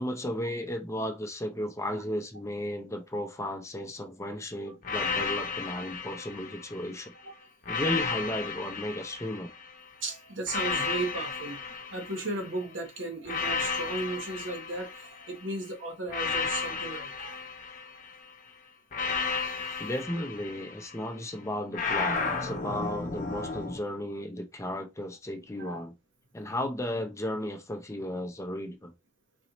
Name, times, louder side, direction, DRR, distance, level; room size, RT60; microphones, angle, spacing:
voice 1, 0.0-7.1 7.7-9.5 19.8-25.9 26.3-28.9, left 1 dB, 15° left, 0.5 m, -34 dB
sound 1, 4.8-7.0 7.6-9.8 10.5-12.6 13.3-15.4 16.1-18.2 18.9-21.1 21.7-23.8, left 4 dB, 45° left, 0.8 m, -33 dB
voice 2, 10.0-11.6 11.9-17.4 19.1-19.9 25.6-25.8, right 2 dB, 80° right, 1.0 m, -36 dB
4.1 x 2.7 x 2.9 m
head